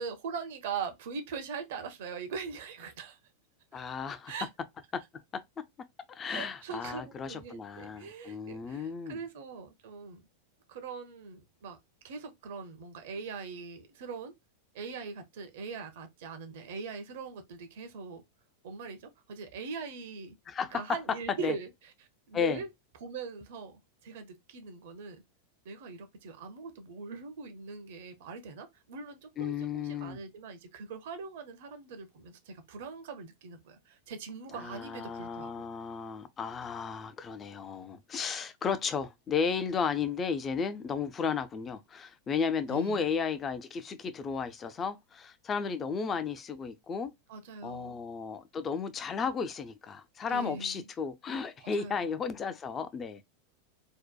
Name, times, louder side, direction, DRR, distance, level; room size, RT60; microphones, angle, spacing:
voice 1, 0.0-3.2 3.7-3.8 4.3-4.5 6.2-10.2 10.7-11.8 12.0-14.3 14.7-18.2 18.6-20.4 20.7-21.7 22.0-22.7 23.0-25.2 25.6-35.7 42.7-43.1 47.3-48.0 50.3-50.9 51.6-52.1, right 5 dB, 55° right, 0.6 m, -41 dB
voice 2, 3.7-4.3 4.9-5.0 6.1-9.2 20.5-20.8 21.4-21.5 22.3-22.6 29.4-30.2 34.5-47.1 47.6-53.2, left 6 dB, 25° left, 0.4 m, -34 dB
2.7 x 2.1 x 2.2 m
figure-of-eight pair, 90°, 0 cm